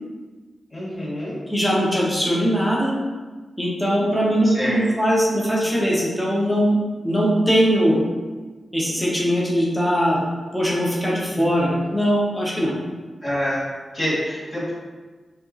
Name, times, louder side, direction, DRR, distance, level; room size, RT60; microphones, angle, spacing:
voice 1, 0.7-1.4 4.4-4.8 11.3-11.8 13.2-13.7 13.9-14.7, equal, 35° left, -10 dB, 1.4 m, -27 dB
voice 2, 1.5-2.9 3.6-6.8 7.0-8.0 8.7-10.2 10.5-12.7, equal, 5° left, -5 dB, 0.7 m, -20 dB
2.6 x 2.3 x 2.4 m, 1.3 s
cardioid pair, 70°, 0 cm